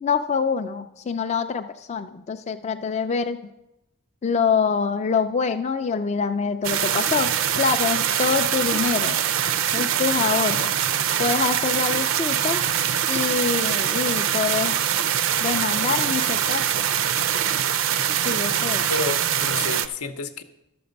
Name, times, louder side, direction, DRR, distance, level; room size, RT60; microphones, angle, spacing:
voice 1, 0.0-3.5 4.2-9.2 9.7-10.7 11.2-12.6 13.1-14.8 15.4-16.9 18.2-18.9, left 5 dB, 30° left, 7 dB, 0.3 m, -25 dB
sound 1, 6.6-19.9, right 9 dB, 60° right, 0.4 m, -23 dB
voice 2, 18.9-20.4, left 4 dB, 90° left, 9 dB, 0.8 m, -30 dB
12.0 x 6.9 x 5.2 m, 0.93 s
head